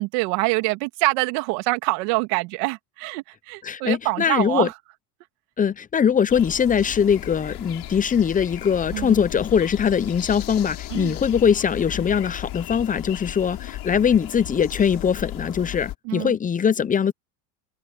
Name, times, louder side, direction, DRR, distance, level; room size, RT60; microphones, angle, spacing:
voice 1, 0.0-4.7 8.9-9.2 10.9-11.1 16.0-16.3, right 24 dB, 80° right, 2.3 m, -25 dB
voice 2, 3.6-4.7 5.6-17.1, left 7 dB, 20° left, 0.6 m, -21 dB
sound 1, 6.3-16.0, left 14 dB, 55° left, 5.4 m, -36 dB
cardioid pair, 120°, 46 cm